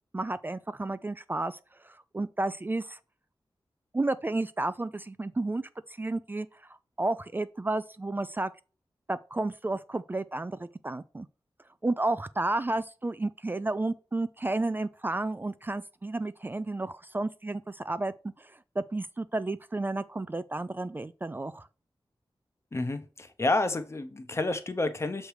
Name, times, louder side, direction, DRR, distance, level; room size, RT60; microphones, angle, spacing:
voice 1, 0.1-1.6 1.8-3.0 3.9-8.5 9.1-11.3 11.8-21.7, right 2 dB, 25° right, 0.3 m, -32 dB
voice 2, 22.7-25.3, left 2 dB, 30° left, 0.7 m, -29 dB
6.6 x 3.2 x 4.8 m
wide cardioid pair, 110°, 9 cm